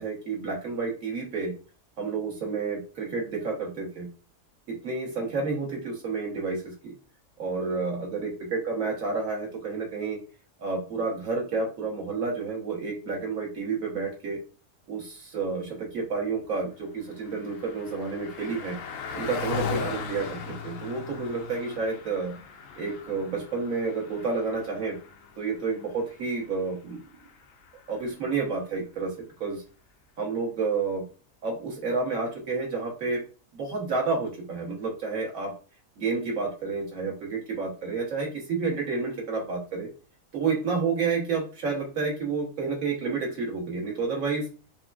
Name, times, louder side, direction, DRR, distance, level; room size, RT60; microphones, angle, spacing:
voice 1, 0.0-1.5 2.0-4.1 4.7-6.9 7.4-10.2 10.6-14.4 14.9-18.8 19.1-22.4 22.7-25.0 25.4-27.0 27.9-29.1 29.4-29.6 30.2-31.0 31.4-33.2 33.5-35.5 36.0-39.9 40.3-44.4, right 4 dB, 60° right, -1 dB, 1.5 m, -30 dB
Car passing by, 16.5-28.3, left 6 dB, 70° left, 0.8 m, -39 dB
5.8 x 2.1 x 2.4 m, 0.35 s
omnidirectional pair, 1.7 m